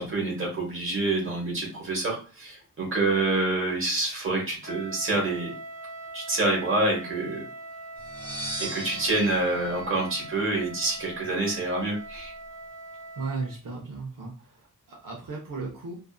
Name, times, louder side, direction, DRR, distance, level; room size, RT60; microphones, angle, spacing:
voice 1, 0.0-5.5 6.1-7.4 8.6-12.3, right 2 dB, 35° right, -2 dB, 1.1 m, -27 dB
Wind instrument woodwind instrument, 4.6-13.5, right 2 dB, 40° left, 0.9 m, -42 dB
sound 1, 8.0-10.8, right 1 dB, 15° right, 1.1 m, -38 dB
voice 2, 13.2-15.9, right 4 dB, 70° right, -2 dB, 0.7 m, -36 dB
2.6 x 2.5 x 2.3 m, 0.35 s
wide cardioid pair, 175°, 34 cm